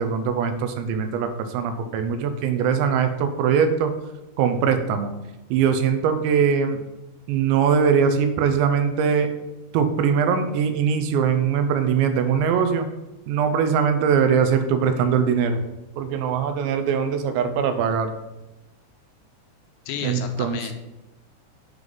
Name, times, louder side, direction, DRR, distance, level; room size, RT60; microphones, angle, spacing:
voice 1, 0.0-3.9 4.4-5.1 5.5-6.8 7.3-9.3 9.7-12.9 13.3-15.6 16.0-18.1 20.0-20.6, right 7 dB, 85° right, 8 dB, 3.0 m, -21 dB
voice 2, 19.9-20.7, left 8 dB, 85° left, 6 dB, 2.9 m, -32 dB
9.2 x 3.9 x 5.3 m, 0.97 s
omnidirectional pair, 5.0 m